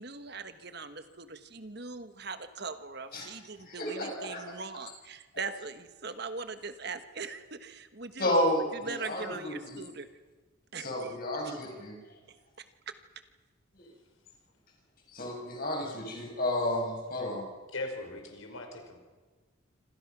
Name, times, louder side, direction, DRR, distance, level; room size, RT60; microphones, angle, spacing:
voice 1, 0.0-8.3 8.8-10.1 10.7-11.2 12.6-12.9, right 4 dB, 50° right, 10 dB, 1.3 m, -41 dB
voice 2, 3.6-4.5 8.2-9.8 10.8-12.0 13.7-13.9 15.1-17.5, left 1 dB, 45° left, 0 dB, 7.0 m, -32 dB
voice 3, 17.7-19.0, left 2 dB, 80° left, 4 dB, 4.8 m, -39 dB
27.0 x 26.0 x 6.1 m, 1.3 s
head